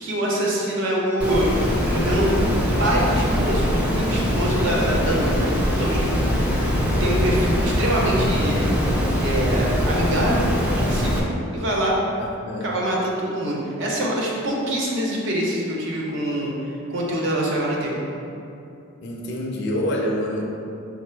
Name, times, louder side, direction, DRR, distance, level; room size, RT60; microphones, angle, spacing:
voice 1, 0.0-3.7 4.0-6.1 7.0-8.7 9.2-12.0 12.6-16.5 16.9-18.1, right 1 dB, 55° right, -3 dB, 0.7 m, -24 dB
Water, 1.2-11.2, equal, 5° right, 0.5 m, -22 dB
voice 2, 19.0-20.6, left 1 dB, 50° left, -1 dB, 0.5 m, -26 dB
4.9 x 2.0 x 4.4 m, 2.8 s
head